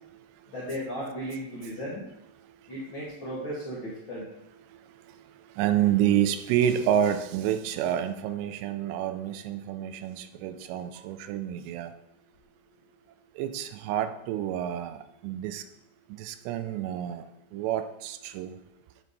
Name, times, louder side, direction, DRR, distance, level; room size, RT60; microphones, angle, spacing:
voice 1, 0.5-2.0 2.7-4.2, equal, 80° left, 1.1 m, -35 dB
voice 2, 5.6-11.9 13.4-15.6 16.2-17.3 17.5-18.6, right 10 dB, 85° right, 2.7 m, -28 dB
9.3 x 5.5 x 4.0 m
omnidirectional pair, 5.0 m